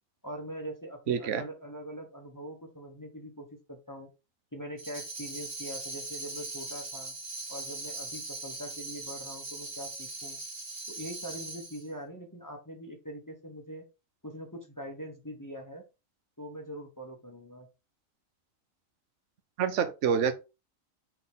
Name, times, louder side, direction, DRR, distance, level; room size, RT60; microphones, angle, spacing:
voice 1, 0.2-4.1 4.5-7.1 7.5-10.4 10.9-13.8 14.2-15.8 16.4-17.7, equal, 15° left, 1.2 m, -42 dB
voice 2, 1.1-1.4 19.6-20.3, right 7 dB, 65° right, 1.1 m, -27 dB
Tambourine, 4.8-11.9, right 2 dB, 45° right, 2.0 m, -40 dB
6.5 x 4.0 x 3.7 m
omnidirectional pair, 1.4 m